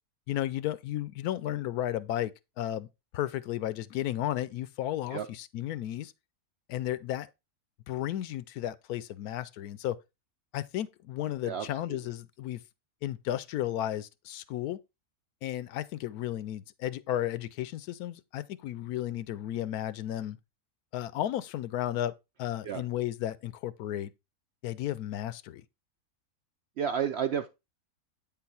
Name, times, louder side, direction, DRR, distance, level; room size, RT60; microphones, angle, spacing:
voice 1, 0.3-2.9 3.1-6.1 6.7-7.3 7.9-10.0 10.5-12.6 13.0-14.8 15.4-20.4 20.9-24.1 24.6-25.6, left 12 dB, 85° left, 1.1 m, -33 dB
voice 2, 11.4-12.0 22.6-22.8 26.8-27.5, right 8 dB, 70° right, 0.6 m, -31 dB
8.8 x 4.0 x 4.2 m
omnidirectional pair, 1.6 m